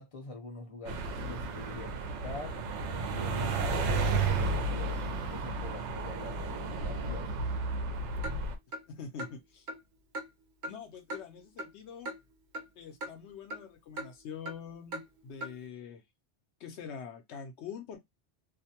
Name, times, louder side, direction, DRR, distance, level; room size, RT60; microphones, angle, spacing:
voice 1, 0.0-2.6 2.9-7.5, left 2 dB, 35° left, 0.7 m, -45 dB
sound 1, 0.9-8.6, right 3 dB, 80° right, 0.9 m, -32 dB
Clock, 8.2-8.4 8.7-8.8 9.2-9.3 9.7-9.8 10.1-10.3 10.6-10.7 11.1-11.2 11.6-11.7 12.1-12.2 12.5-12.7 13.0-13.1 13.5-13.6 14.0-14.1 14.5-14.6 14.9-15.0 15.4-15.5, right 1 dB, 55° right, 0.6 m, -38 dB
voice 2, 8.9-9.7 10.7-12.1 12.8-16.0 16.6-18.0, left 7 dB, 75° left, 0.8 m, -45 dB
2.5 x 2.1 x 2.7 m
omnidirectional pair, 1.2 m